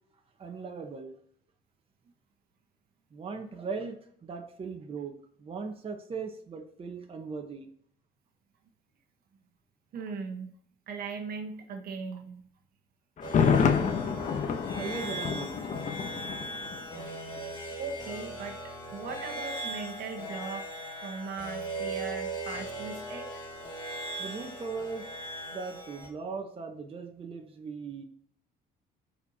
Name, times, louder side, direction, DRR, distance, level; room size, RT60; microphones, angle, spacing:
voice 1, 0.4-1.1 3.1-4.0 4.2-7.7 14.7-15.6 24.2-25.1 25.5-28.0, right 5 dB, 35° right, 3 dB, 1.1 m, -38 dB
voice 2, 9.9-10.5 10.9-12.4 17.8-18.6 18.9-20.7 21.0-23.4, right 5 dB, 60° right, 4 dB, 1.2 m, -39 dB
Thunder, 13.2-17.1 17.4-17.5, left 6 dB, 45° left, 1.0 m, -28 dB
sound 1, 13.2-26.1, right 1 dB, 25° left, 1.8 m, -39 dB
13.0 x 4.5 x 2.8 m, 0.62 s
cardioid pair, 110°, 17 cm